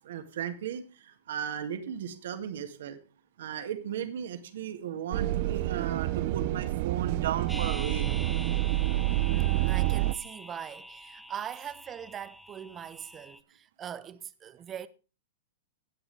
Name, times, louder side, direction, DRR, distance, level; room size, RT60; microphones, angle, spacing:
voice 1, 0.0-3.0 3.4-8.1, right 9 dB, 65° right, 2.0 m, -35 dB
S-Bahn - Ring - Prenzlauer Allee, 5.1-10.2, right 16 dB, 50° right, 0.6 m, -28 dB
sound 1, 7.5-13.4, left 1 dB, ahead, 0.7 m, -45 dB
voice 2, 9.3-14.9, right 9 dB, 25° right, 0.9 m, -41 dB
17.5 x 8.1 x 3.4 m
hypercardioid pair, 115°, 0 cm